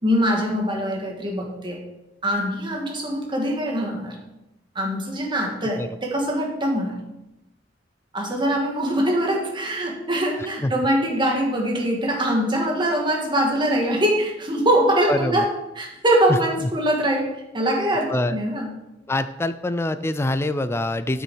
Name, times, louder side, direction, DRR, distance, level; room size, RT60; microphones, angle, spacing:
voice 1, 0.0-1.8 2.2-4.2 4.8-7.0 8.1-18.7, equal, 25° right, 1 dB, 1.8 m, -23 dB
voice 2, 15.1-15.4 16.3-16.7 18.1-18.4 19.1-21.2, left 1 dB, 15° left, 11 dB, 0.3 m, -25 dB
12.0 x 6.3 x 4.6 m, 0.93 s
head